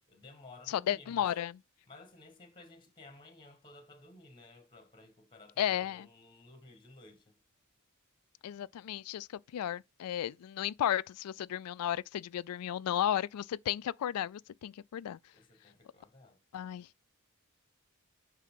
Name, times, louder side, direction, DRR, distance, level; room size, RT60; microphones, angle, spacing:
voice 1, 0.1-1.3 1.9-7.4 15.3-16.4, left 2 dB, 20° left, 1.3 m, -55 dB
voice 2, 0.7-1.5 5.6-6.1 8.4-9.3 9.5-15.2 16.5-16.9, left 10 dB, 90° left, 0.3 m, -34 dB
9.3 x 3.7 x 3.7 m
head